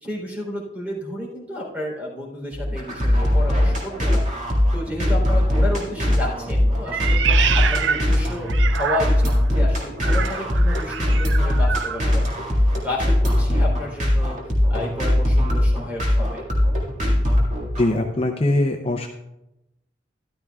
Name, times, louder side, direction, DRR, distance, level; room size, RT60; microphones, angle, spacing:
voice 1, 0.0-4.3 4.7-7.2 7.5-12.3 12.8-14.4 14.7-16.4, left 1 dB, 10° right, -2 dB, 3.5 m, -31 dB
sound 1, 2.5-17.9, left 1 dB, 40° right, 2.1 m, -20 dB
Meow, 6.9-9.4 10.0-12.0, right 7 dB, 80° right, 0.5 m, -26 dB
voice 2, 17.8-19.1, left 1 dB, 30° left, 3 dB, 0.6 m, -21 dB
13.0 x 12.0 x 2.4 m, 0.90 s
head